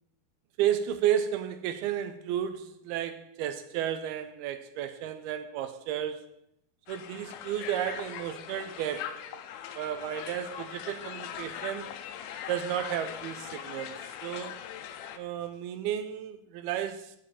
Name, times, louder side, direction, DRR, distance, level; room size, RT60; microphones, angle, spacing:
voice 1, 0.6-6.3 6.9-9.4 9.8-11.9 12.5-14.6 15.2-17.1, right 10 dB, 80° right, 2.4 m, -32 dB
Crowd, 6.9-15.2, left 9 dB, 80° left, 2.3 m, -41 dB
8.4 x 7.7 x 7.0 m
omnidirectional pair, 4.9 m